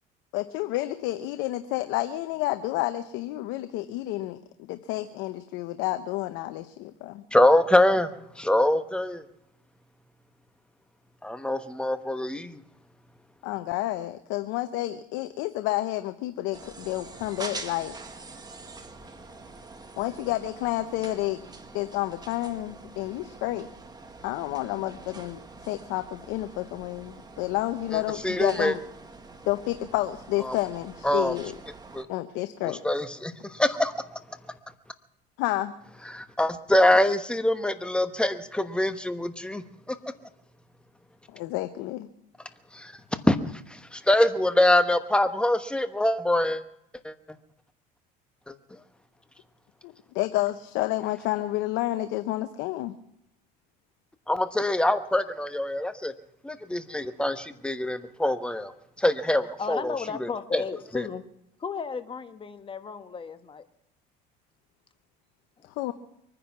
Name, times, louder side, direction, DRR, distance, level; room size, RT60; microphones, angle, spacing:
voice 1, 0.3-7.2 13.4-18.0 20.0-21.4 21.7-23.7 24.2-28.8 29.5-31.5 32.1-32.8 35.4-35.7 41.3-42.1 49.8-53.0 65.8-65.9, left 16 dB, 75° left, 10 dB, 0.8 m, -30 dB
voice 2, 7.3-8.1 8.4-9.2 11.2-12.6 27.9-28.7 30.4-30.6 31.0-31.4 31.9-32.1 32.6-33.9 36.0-40.0 42.7-42.9 43.2-43.4 43.7-46.6 47.0-47.1 48.5-48.8 54.3-56.1 56.4-58.7 59.0-59.9 60.2-60.6 60.9-61.1, left 1 dB, 5° left, 9 dB, 1.2 m, -24 dB
sound 1, 16.5-32.0, right 3 dB, 20° right, 1.8 m, -45 dB
voice 3, 59.6-61.2 61.6-63.6 65.6-65.7, left 5 dB, 25° left, 9 dB, 1.3 m, -34 dB
23.5 x 10.0 x 6.0 m, 0.79 s
supercardioid pair, 100°, 19 cm